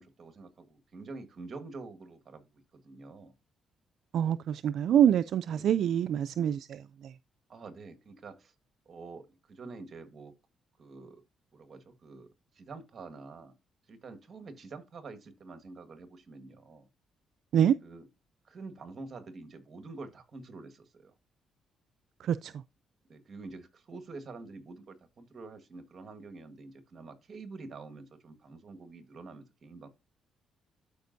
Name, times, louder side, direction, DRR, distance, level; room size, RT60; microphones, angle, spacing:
voice 1, 0.0-2.4 2.7-3.3 5.5-5.8 7.5-8.5 8.8-10.3 10.8-11.2 11.5-12.3 12.5-13.5 13.9-16.9 17.8-18.0 18.4-21.1 23.1-29.9, right 3 dB, 45° right, 1.6 m, -47 dB
voice 2, 4.1-7.1 17.5-17.8 22.2-22.5, right 9 dB, 70° right, 0.3 m, -26 dB
12.5 x 5.1 x 2.6 m
cardioid pair, 90°, 0 cm